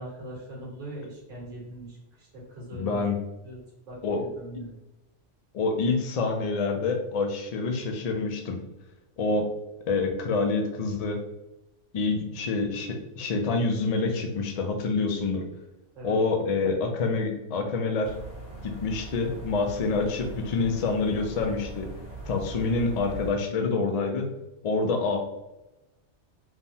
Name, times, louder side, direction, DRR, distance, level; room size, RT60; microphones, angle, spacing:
voice 1, 0.0-3.0 3.4-4.8 15.9-16.2, right 1 dB, 50° right, -5 dB, 1.3 m, -41 dB
voice 2, 2.7-3.2 4.0-4.2 5.5-8.6 9.2-9.5 9.9-11.2 11.9-15.4 16.0-18.1 18.6-21.9 22.3-24.3 24.6-25.2, left 3 dB, 60° left, 3 dB, 0.4 m, -27 dB
sound 1, 18.0-23.3, right 2 dB, 80° left, 1.3 m, -41 dB
3.3 x 2.1 x 2.6 m, 0.97 s
omnidirectional pair, 1.2 m